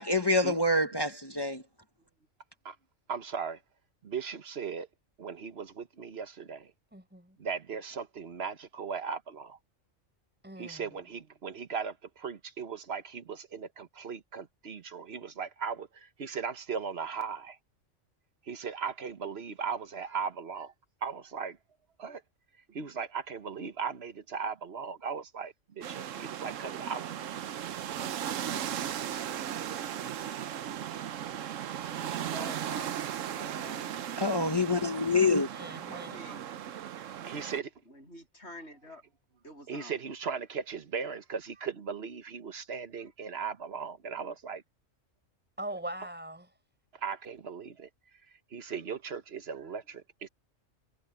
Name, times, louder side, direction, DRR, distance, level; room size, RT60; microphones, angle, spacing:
voice 1, 0.0-1.6 34.2-35.5, left 2 dB, 20° left, 1.0 m, -26 dB
voice 2, 3.1-3.6 4.0-4.9 5.2-6.7 7.4-9.6 10.6-17.6 18.5-20.7 21.0-21.6 22.0-22.2 22.7-27.1 37.2-37.7 39.7-44.6 47.0-47.9 48.5-50.3, right 6 dB, 55° right, 1.3 m, -37 dB
voice 3, 6.9-7.4 10.4-10.9 35.5-36.2 45.6-46.5, right 1 dB, 10° right, 4.6 m, -41 dB
sound 1, 25.8-37.6, right 10 dB, 80° right, 1.1 m, -37 dB
voice 4, 32.0-34.2 35.7-36.5 37.9-39.0 39.4-40.0, left 1 dB, 60° left, 8.5 m, -48 dB
omnidirectional pair, 1.3 m